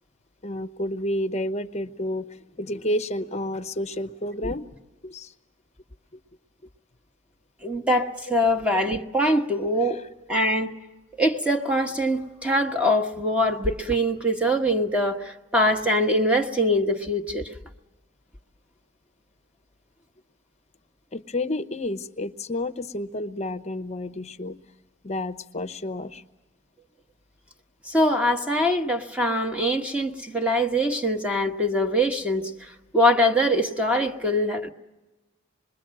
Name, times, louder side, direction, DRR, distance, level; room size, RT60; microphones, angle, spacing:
voice 1, 0.4-4.7 5.0-5.3 9.8-10.0 21.1-24.6 25.0-26.2, left 1 dB, 35° left, 9 dB, 0.8 m, -30 dB
voice 2, 7.6-10.0 10.3-10.7 11.2-17.5 27.9-34.7, equal, 5° right, 4 dB, 1.3 m, -23 dB
27.0 x 21.5 x 7.6 m, 1.1 s
head